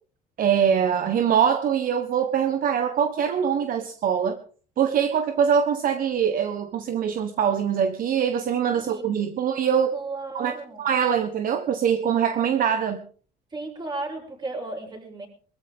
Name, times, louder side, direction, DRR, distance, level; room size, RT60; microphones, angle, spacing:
voice 1, 0.4-4.4 4.8-9.9 10.3-13.0, right 8 dB, 55° right, 8 dB, 1.4 m, -23 dB
voice 2, 8.7-9.3 9.9-10.9 13.5-15.3, right 3 dB, 25° right, 1 dB, 7.4 m, -35 dB
22.0 x 14.0 x 3.8 m, 0.42 s
cardioid pair, 110°, 17 cm